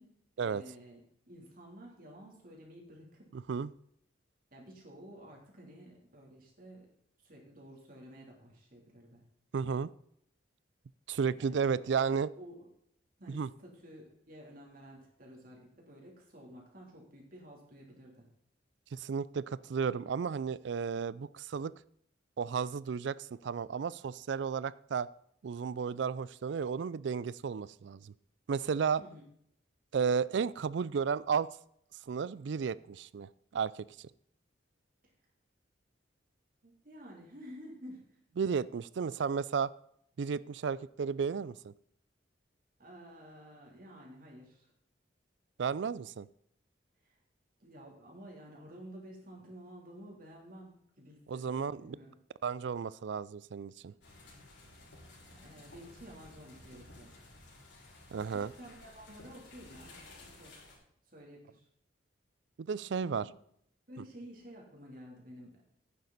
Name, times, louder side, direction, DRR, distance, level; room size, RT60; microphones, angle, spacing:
voice 1, 0.0-3.3 4.5-6.9 7.2-9.2 11.3-12.6 13.2-18.3 29.0-29.2 36.6-38.2 42.8-44.7 47.0-47.2 47.6-52.1 55.2-57.1 58.3-60.6 61.1-61.7 63.2-63.3 63.9-65.6, equal, 50° right, -1 dB, 3.1 m, -52 dB
voice 2, 3.3-3.7 9.5-9.9 11.1-12.3 13.3-13.5 18.9-21.7 22.4-25.1 25.4-28.1 28.5-29.0 29.9-31.5 32.1-33.9 38.4-39.7 40.2-41.7 45.6-46.3 51.3-52.0 52.4-53.9 58.1-58.5 62.6-63.3, right 6 dB, 70° right, 20 dB, 0.4 m, -33 dB
sound 1, 54.0-60.8, left 2 dB, 70° left, 4.5 m, -55 dB
11.0 x 9.5 x 4.1 m, 0.71 s
head